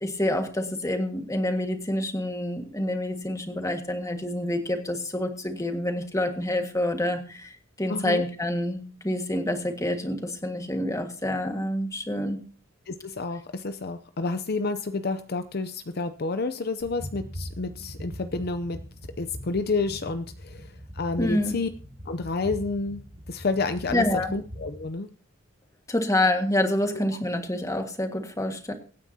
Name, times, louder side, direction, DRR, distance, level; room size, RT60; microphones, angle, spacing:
voice 1, 0.0-12.4 21.2-21.6 23.9-24.3 25.9-28.7, left 1 dB, 15° left, 5 dB, 1.7 m, -27 dB
voice 2, 7.9-8.2 12.9-18.8 19.2-21.7 22.1-23.0 23.3-24.0 24.3-25.1, left 3 dB, 50° left, 9 dB, 0.6 m, -29 dB
sound 1, 16.8-24.9, equal, 40° right, 2.1 m, -41 dB
24.5 x 9.7 x 2.8 m, 0.39 s
head